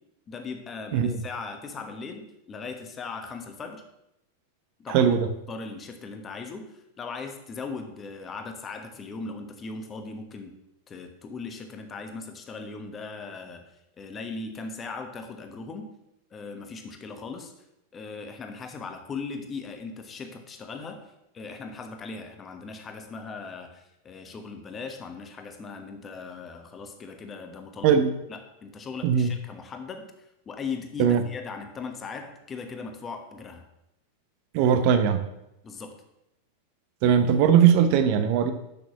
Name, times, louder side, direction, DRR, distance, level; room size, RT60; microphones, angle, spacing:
voice 1, 0.3-3.8 4.8-5.1 5.5-10.6 10.9-13.7 14.0-15.9 16.3-17.5 17.9-21.0 21.3-28.0 28.3-30.1 30.5-33.6 35.6-35.9, left 4 dB, 20° left, 5 dB, 1.2 m, -38 dB
voice 2, 4.9-5.3 27.8-28.1 29.0-29.3 31.0-31.2 34.5-35.2 37.0-38.5, right 8 dB, 45° right, 9 dB, 0.8 m, -20 dB
6.9 x 6.1 x 5.9 m, 0.86 s
figure-of-eight pair, 90°, 0 cm